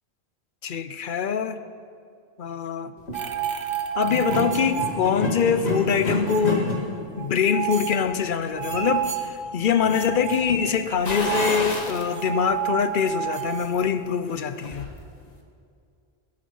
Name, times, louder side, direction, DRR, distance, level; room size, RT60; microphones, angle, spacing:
voice 1, 0.6-1.6 2.4-2.9 4.0-6.8 7.2-14.9, left 7 dB, 55° left, 11 dB, 0.8 m, -24 dB
sound 1, 3.0-3.2 4.0-11.5, left 2 dB, 80° left, 2.4 m, -31 dB
sound 2, 3.1-5.4 5.7-6.6 7.2-9.3 9.8-13.7, right 10 dB, 60° right, 1.1 m, -30 dB
sound 3, 11.0-12.1 12.5-12.6 14.1-14.9 15.3-15.4, left 2 dB, 40° left, 1.5 m, -30 dB
17.5 x 12.5 x 5.5 m, 2.4 s
omnidirectional pair, 1.1 m